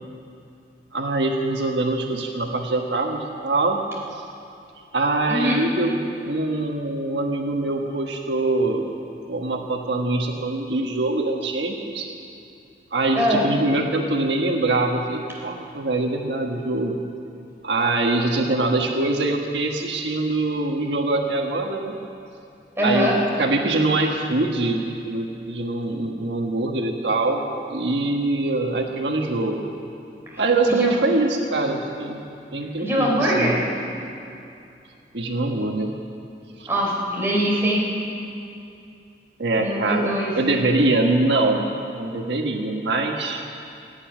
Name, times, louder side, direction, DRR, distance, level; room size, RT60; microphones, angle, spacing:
voice 1, 0.9-3.8 4.1-4.2 4.9-8.9 9.3-12.1 12.9-17.0 17.6-21.9 22.8-23.1 23.4-29.6 30.4-32.2 32.5-33.5 35.1-35.9 36.6-36.7 39.4-41.7 42.0-43.4, right 2 dB, 85° right, 2 dB, 1.3 m, -23 dB
voice 2, 5.3-5.6 13.2-13.5 22.8-23.2 30.3-30.9 32.8-33.6 36.7-37.9 39.6-40.3, equal, 15° right, -4 dB, 3.6 m, -22 dB
17.0 x 9.3 x 9.2 m, 2.6 s
head